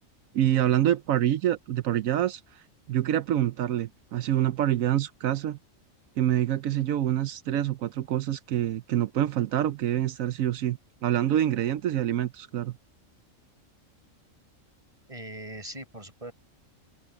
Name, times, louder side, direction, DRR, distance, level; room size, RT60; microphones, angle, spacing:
voice 1, 0.3-5.6 6.2-12.7, right 12 dB, 80° right, 1.1 m, -26 dB
voice 2, 15.1-16.3, right 1 dB, 25° right, 7.8 m, -40 dB
open air
omnidirectional pair, 1.4 m